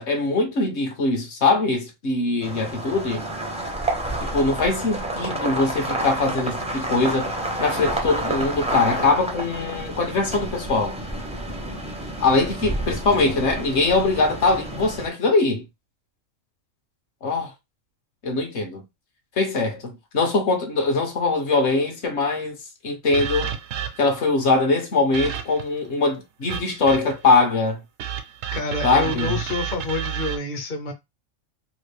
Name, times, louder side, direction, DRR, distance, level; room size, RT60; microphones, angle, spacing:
voice 1, 0.0-3.2 4.3-7.3 7.6-11.0 12.2-15.6 17.2-17.5 18.2-18.8 19.4-22.6 22.8-23.5 24.0-27.8 28.8-29.4, left 3 dB, 60° left, 1.1 m, -22 dB
sound 1, 2.4-15.1, right 1 dB, 10° right, 0.3 m, -29 dB
sound 2, 23.1-24.2 25.1-25.8 26.5-27.3 28.0-30.4, right 9 dB, 80° right, 1.0 m, -31 dB
voice 2, 28.5-30.9, left 2 dB, 45° left, 0.7 m, -28 dB
3.1 x 2.4 x 3.3 m
omnidirectional pair, 1.4 m